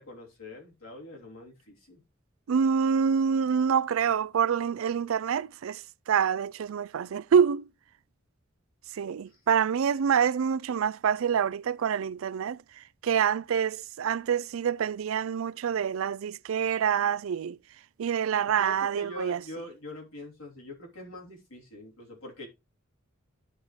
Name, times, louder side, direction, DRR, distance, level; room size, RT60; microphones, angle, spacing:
voice 1, 0.0-2.0 18.6-22.5, left 2 dB, 90° left, 3.2 m, -43 dB
voice 2, 2.5-7.6 8.9-17.6 18.0-19.4, right 7 dB, 75° right, 0.4 m, -26 dB
12.0 x 5.1 x 3.1 m
head